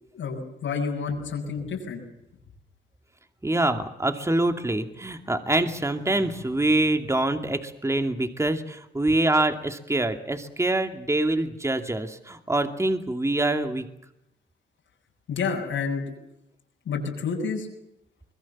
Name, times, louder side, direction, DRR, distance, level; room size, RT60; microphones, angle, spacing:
voice 1, 0.1-2.0 15.3-16.0 16.9-17.7, left 5 dB, 85° left, -1 dB, 7.6 m, -29 dB
voice 2, 3.4-13.9, right 2 dB, 15° right, 7 dB, 2.5 m, -25 dB
25.5 x 21.5 x 7.3 m, 0.81 s
cardioid pair, 80°, 20 cm